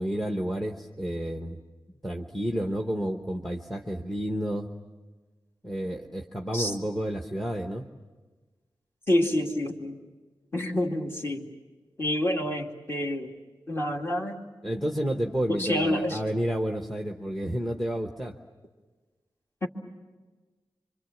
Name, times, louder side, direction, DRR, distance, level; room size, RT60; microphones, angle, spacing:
voice 1, 0.0-1.6 2.0-4.7 5.6-7.9 14.6-18.4, equal, 5° left, 3 dB, 1.1 m, -30 dB
voice 2, 9.1-10.0 10.5-11.5 12.0-13.3 13.7-14.4 15.5-16.2 19.6-19.7, left 1 dB, 25° left, 1 dB, 2.3 m, -27 dB
26.5 x 25.0 x 7.2 m, 1.3 s
wide cardioid pair, 145°, 9 cm